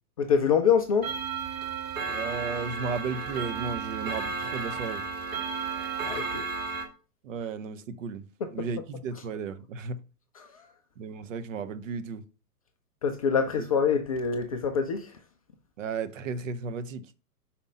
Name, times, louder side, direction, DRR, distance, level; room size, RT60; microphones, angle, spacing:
voice 1, 0.2-1.1 6.1-6.5 8.4-8.7 10.3-10.6 13.0-15.2, left 6 dB, 25° left, 0.4 m, -25 dB
Clock, 1.0-6.9, right 5 dB, 20° right, 1.6 m, -33 dB
voice 2, 2.0-5.0 7.2-8.2 8.5-10.0 11.0-12.2 15.8-17.1, right 5 dB, 55° right, 0.8 m, -34 dB
5.2 x 4.3 x 5.0 m
figure-of-eight pair, 110°, 47 cm